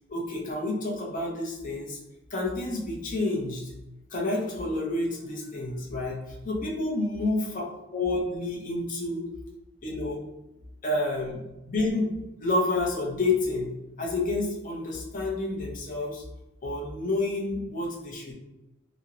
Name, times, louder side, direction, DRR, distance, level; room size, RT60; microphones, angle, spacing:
voice 1, 0.1-2.0 2.3-3.7 4.1-6.2 6.4-7.6 7.9-9.3 9.8-10.2 10.8-11.4 11.7-16.2 16.6-18.3, left 2 dB, 40° left, -3 dB, 0.5 m, -29 dB
2.8 x 2.0 x 2.4 m, 0.97 s
head